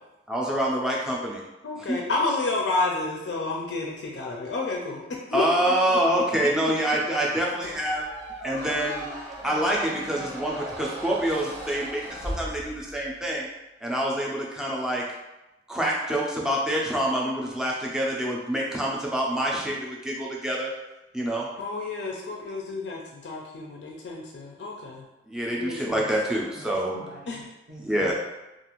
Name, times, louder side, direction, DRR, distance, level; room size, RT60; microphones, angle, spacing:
voice 1, 0.3-1.4 1.9-2.0 5.3-8.0 8.4-9.1 9.4-13.5 13.8-15.0 15.7-20.7 21.1-21.5 25.3-26.9 27.8-28.1, right 1 dB, 5° right, -4 dB, 0.4 m, -26 dB
voice 2, 1.6-6.0 21.6-25.0 25.5-26.1 27.3-27.4, left 3 dB, 65° left, -1 dB, 0.4 m, -30 dB
Squeak, 7.6-13.1, right 1 dB, 70° right, 1.1 m, -38 dB
voice 3, 26.3-28.1, right 1 dB, 50° right, -4 dB, 0.7 m, -46 dB
2.4 x 2.4 x 2.9 m, 0.98 s
head